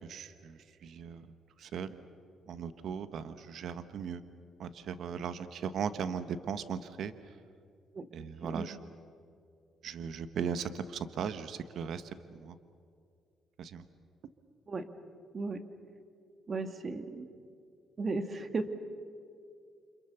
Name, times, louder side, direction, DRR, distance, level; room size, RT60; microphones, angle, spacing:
voice 1, 0.0-1.3 1.6-2.0 2.5-4.2 4.6-7.1 8.1-8.8 9.8-12.6 13.6-13.8, right 7 dB, 70° right, 11 dB, 1.2 m, -38 dB
voice 2, 16.5-17.3 18.0-18.7, right 3 dB, 40° right, 8 dB, 2.1 m, -35 dB
30.0 x 26.5 x 7.0 m, 2.3 s
cardioid pair, 90°, 0 cm